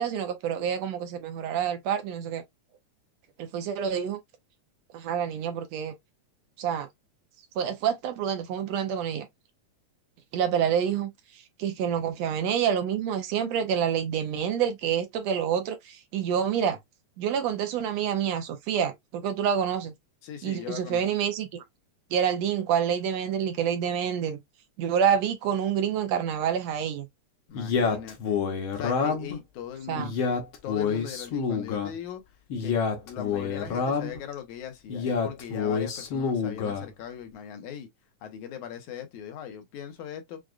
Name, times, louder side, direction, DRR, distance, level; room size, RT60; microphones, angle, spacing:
voice 1, 0.0-2.4 3.4-4.2 4.9-6.0 6.6-6.9 7.6-9.3 10.3-11.1 11.6-16.8 17.2-19.9 20.4-21.6 22.1-24.4 24.8-27.1 29.9-30.1, right 8 dB, 75° right, 1.8 m, -27 dB
voice 2, 20.2-21.0 27.5-28.4 28.8-30.2 30.6-32.2 32.6-32.8 33.1-37.9 38.2-40.4, left 8 dB, 85° left, 2.4 m, -40 dB
Male speech man speaking, 27.5-29.4 29.9-31.9 32.5-34.2 34.9-36.9, left 5 dB, 60° left, 1.4 m, -28 dB
6.4 x 2.4 x 2.4 m
omnidirectional pair, 3.3 m